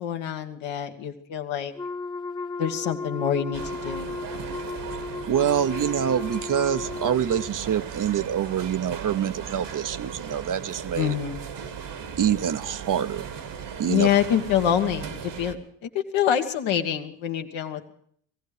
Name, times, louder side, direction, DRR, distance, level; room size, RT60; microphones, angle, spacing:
voice 1, 0.0-1.7 2.6-4.1 11.0-11.4 13.9-17.9, left 9 dB, 80° left, 4 dB, 1.5 m, -26 dB
Wind instrument woodwind instrument, 1.8-7.5, left 4 dB, 10° left, 1.0 m, -35 dB
sound 1, 3.5-15.5, right 7 dB, 65° right, 1.8 m, -37 dB
voice 2, 5.3-11.1 12.2-13.3 13.8-14.1, right 9 dB, 45° right, 12 dB, 0.8 m, -25 dB
19.5 x 15.0 x 4.9 m, 0.63 s
supercardioid pair, 65°, 45 cm